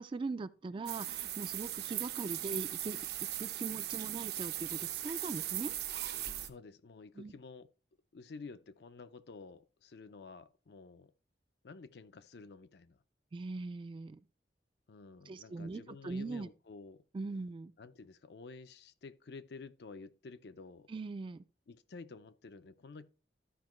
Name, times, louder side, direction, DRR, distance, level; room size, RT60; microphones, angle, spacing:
voice 1, 0.0-3.0 3.4-5.7 7.2-7.3 13.3-14.2 15.3-16.5 17.1-17.7 20.9-21.4, right 3 dB, 30° right, 0.3 m, -41 dB
sound 1, 0.9-6.5, right 13 dB, 65° right, 0.7 m, -38 dB
voice 2, 6.3-7.7 8.1-11.1 11.6-13.0 14.9-17.0 17.8-20.9 21.7-23.1, left 4 dB, 65° left, 0.5 m, -51 dB
12.5 x 5.1 x 3.0 m
head